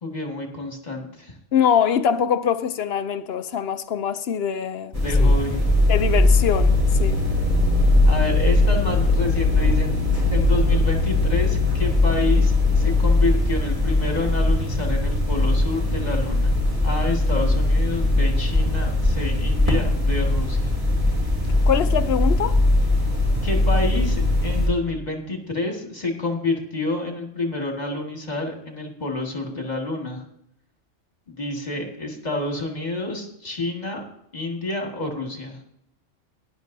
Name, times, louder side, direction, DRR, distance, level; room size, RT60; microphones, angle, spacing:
voice 1, 0.0-1.3 4.9-5.6 8.1-10.0 10.3-16.5 16.8-20.8 23.4-30.2 31.3-34.0 34.3-35.6, left 2 dB, 35° left, 2.1 m, -28 dB
voice 2, 1.5-5.3 5.9-7.2 21.7-22.6, left 8 dB, 60° left, 0.8 m, -23 dB
sound 1, 4.9-24.7, left 1 dB, 15° right, 2.9 m, -21 dB
sound 2, 5.6-14.3, left 4 dB, 40° right, 1.0 m, -24 dB
18.0 x 11.0 x 2.7 m
omnidirectional pair, 1.2 m